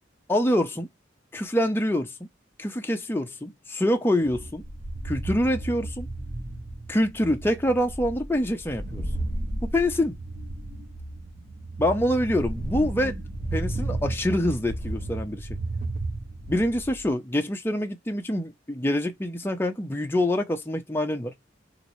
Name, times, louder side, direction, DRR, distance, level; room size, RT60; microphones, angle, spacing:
voice 1, 0.3-0.9 1.3-2.1 2.6-4.6 5.0-6.1 6.9-9.0 9.7-10.1 11.8-13.1 13.5-15.5 16.5-21.3, left 1 dB, 10° left, 0.6 m, -25 dB
sound 1, 4.2-17.1, right 2 dB, 40° right, 1.1 m, -33 dB
3.0 x 2.9 x 3.0 m
head